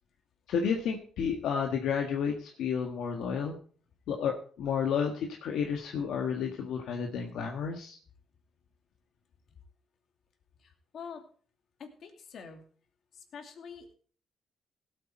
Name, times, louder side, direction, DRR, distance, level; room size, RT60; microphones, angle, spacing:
voice 1, 0.5-3.6 4.1-5.1 5.4-8.0, left 7 dB, 80° left, 2 dB, 1.5 m, -31 dB
voice 2, 10.6-11.2 11.8-12.6 13.1-13.9, left 6 dB, 60° left, 5 dB, 2.6 m, -46 dB
17.0 x 8.5 x 4.4 m, 0.43 s
cardioid pair, 90°, 0 cm